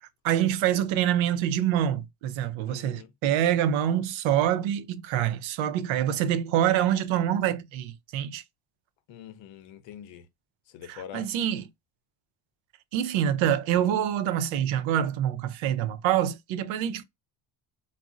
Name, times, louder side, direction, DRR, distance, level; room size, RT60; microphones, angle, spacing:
voice 1, 0.2-8.4 10.9-11.6 12.9-17.0, right 10 dB, 85° right, 0.6 m, -26 dB
voice 2, 2.7-3.1 9.1-10.3 10.7-11.4, left 9 dB, 75° left, 0.6 m, -44 dB
2.4 x 2.0 x 3.6 m
cardioid pair, 175°, 45 cm